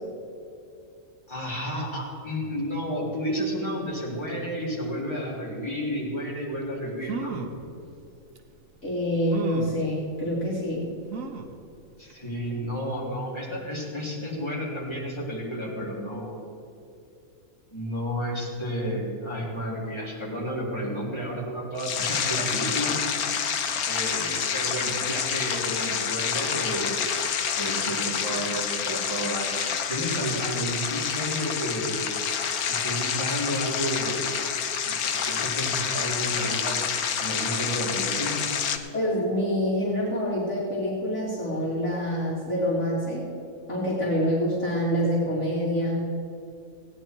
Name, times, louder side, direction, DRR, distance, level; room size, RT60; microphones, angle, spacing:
voice 1, 1.3-7.4 12.0-16.4 17.7-23.2 23.8-27.0 27.6-32.1 32.7-34.3 34.8-36.7 37.2-38.4, equal, 20° left, -6 dB, 3.5 m, -31 dB
sound 1, 6.6-6.7 7.0-7.6 8.4-8.5 9.3-9.8 11.1-11.6 12.1-12.2 12.5-12.6, right 6 dB, 65° right, 1.4 m, -34 dB
voice 2, 8.8-10.9 38.9-43.2 43.7-46.1, equal, 55° left, -5 dB, 2.8 m, -26 dB
sound 2, 21.8-38.8, left 7 dB, 90° left, 1.4 m, -28 dB
17.0 x 9.9 x 4.6 m, 2.6 s
omnidirectional pair, 1.5 m